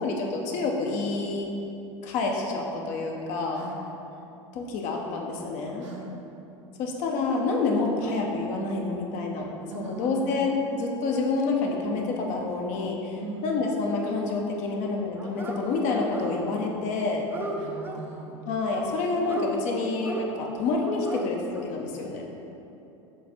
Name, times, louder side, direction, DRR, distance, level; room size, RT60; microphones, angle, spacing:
voice 1, 0.0-1.5 2.0-3.6 4.5-5.8 6.8-9.5 9.7-13.2 13.4-17.2 18.5-22.2, left 3 dB, 50° left, 0 dB, 0.9 m, -28 dB
voice 2, 5.8-6.1 9.7-10.5 13.2-13.6 17.6-18.3, right 3 dB, 75° right, -1 dB, 1.0 m, -39 dB
Dog, 15.2-15.6 15.9-16.7 17.0-18.0 18.7-19.5 20.0-20.3 20.8-21.2 21.5-21.6, right 2 dB, 15° right, 0.6 m, -36 dB
7.1 x 3.3 x 4.3 m, 2.9 s
hypercardioid pair, 85°, 16 cm